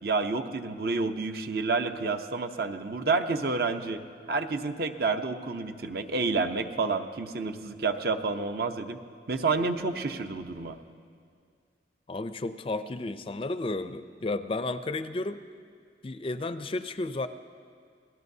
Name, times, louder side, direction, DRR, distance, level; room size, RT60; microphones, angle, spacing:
voice 1, 0.0-4.0 4.3-9.0 9.3-10.8, right 4 dB, 55° right, 7 dB, 0.8 m, -29 dB
voice 2, 12.1-15.4 16.0-17.3, left 2 dB, 30° left, 11 dB, 0.4 m, -32 dB
28.5 x 18.5 x 2.7 m, 2.1 s
head